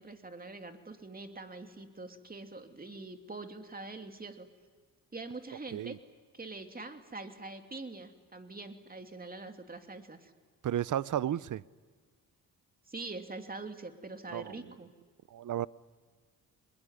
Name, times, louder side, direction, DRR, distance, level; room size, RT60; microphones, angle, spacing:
voice 1, 0.0-4.5 5.1-6.0 6.3-10.3 12.9-14.9, right 3 dB, 25° right, 6 dB, 2.7 m, -44 dB
voice 2, 10.6-11.6 14.3-14.6 15.3-15.7, right 11 dB, 55° right, 20 dB, 0.7 m, -33 dB
25.0 x 21.5 x 9.6 m, 1.5 s
cardioid pair, 65°, 36 cm